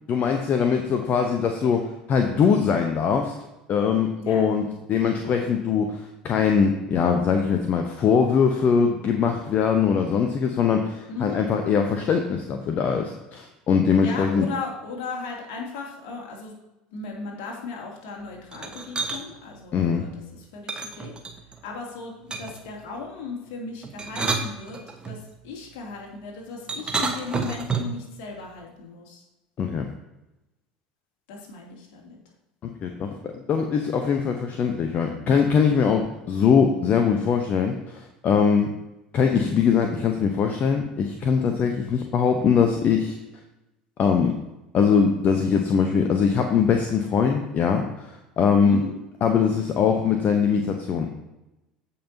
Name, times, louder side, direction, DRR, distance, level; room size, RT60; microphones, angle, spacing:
voice 1, 0.1-3.3 3.7-14.5 19.7-20.0 29.6-29.8 32.6-38.7 39.1-43.2 44.0-44.4 44.7-48.8 49.2-51.1, left 6 dB, 40° left, 4 dB, 0.9 m, -22 dB
voice 2, 11.1-11.4 14.0-16.5 16.9-20.2 20.5-21.1 21.6-24.8 25.0-29.2 31.3-32.2 48.6-48.9, left 4 dB, 60° left, -1 dB, 2.7 m, -36 dB
sound 1, 18.5-19.2 20.7-21.6 22.3-22.7 23.8-25.2 26.7-28.0, right 4 dB, 20° right, 1.3 m, -29 dB
15.5 x 5.8 x 2.8 m, 0.97 s
figure-of-eight pair, 70°, 4 cm